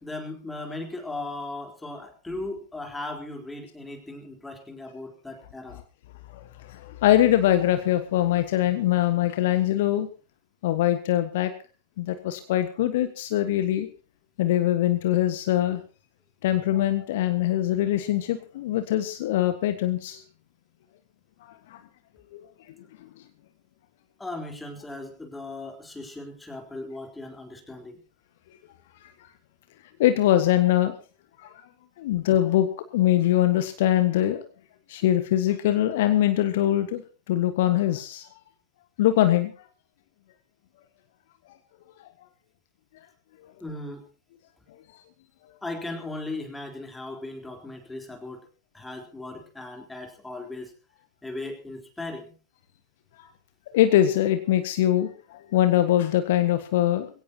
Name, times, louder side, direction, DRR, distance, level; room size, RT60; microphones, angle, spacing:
voice 1, 0.0-5.8 24.2-28.0 43.6-44.1 45.6-48.5 48.7-50.7 51.2-52.3, left 2 dB, 10° left, 3 dB, 3.9 m, -37 dB
voice 2, 6.3-10.1 10.6-11.5 12.0-13.9 14.4-15.8 16.4-20.2 21.4-21.8 22.3-22.5 30.0-31.0 31.4-31.5 32.0-32.7 32.9-34.4 34.9-37.0 37.3-38.3 39.0-39.5 53.2-53.3 53.7-57.1, left 13 dB, 55° left, 9 dB, 1.5 m, -23 dB
21.5 x 17.0 x 2.9 m, 0.35 s
figure-of-eight pair, 90°, 0 cm